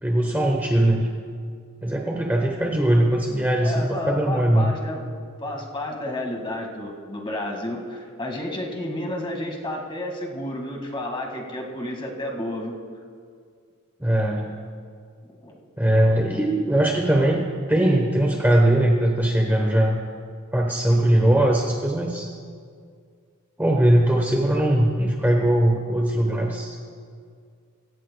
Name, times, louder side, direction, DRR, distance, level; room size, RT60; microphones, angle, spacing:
voice 1, 0.0-1.1 1.8-4.7 14.0-14.5 15.8-20.0 20.5-22.3 23.6-26.8, right 1 dB, 10° right, 0 dB, 0.9 m, -20 dB
voice 2, 3.6-5.0 5.4-12.8 15.3-15.6, left 1 dB, 20° left, 1 dB, 1.8 m, -31 dB
24.0 x 16.0 x 2.3 m, 2.1 s
head